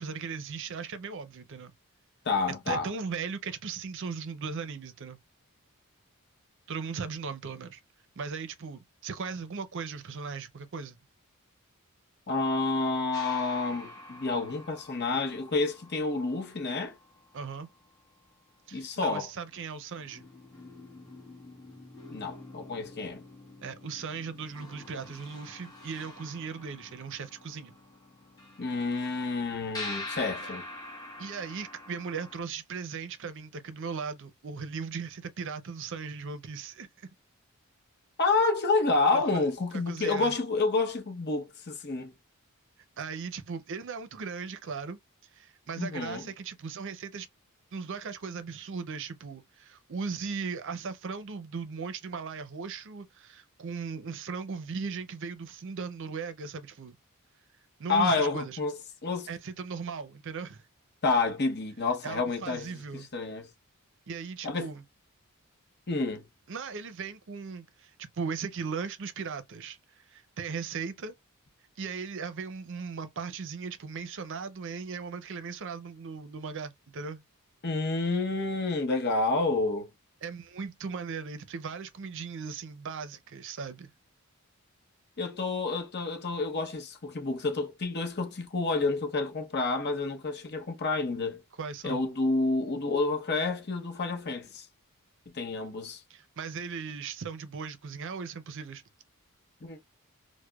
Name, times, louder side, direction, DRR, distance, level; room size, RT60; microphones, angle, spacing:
voice 1, 0.0-1.7 2.7-5.2 6.7-7.8 8.2-11.0 17.3-17.7 18.7-20.3 23.6-27.7 30.4-30.5 31.2-37.1 39.1-39.4 39.7-40.3 43.0-45.0 45.3-47.3 47.7-57.0 57.8-58.6 59.3-60.6 62.0-63.1 64.1-64.8 66.5-71.1 71.8-77.2 80.2-83.9 91.6-92.0 96.1-98.8, right 5 dB, 55° right, 0.5 m, -38 dB
voice 2, 2.2-2.9 12.3-16.9 18.7-19.3 22.1-23.2 28.6-30.6 38.2-42.1 45.8-46.3 57.9-59.3 61.0-63.5 64.4-64.7 65.9-66.3 77.6-79.9 85.2-91.4 91.8-94.7 95.3-96.0 99.6-99.8, left 3 dB, 45° left, 0.8 m, -29 dB
sound 1, 13.1-18.0 19.5-19.6 20.0-32.4, left 2 dB, 15° left, 1.2 m, -46 dB
4.7 x 2.1 x 2.2 m
head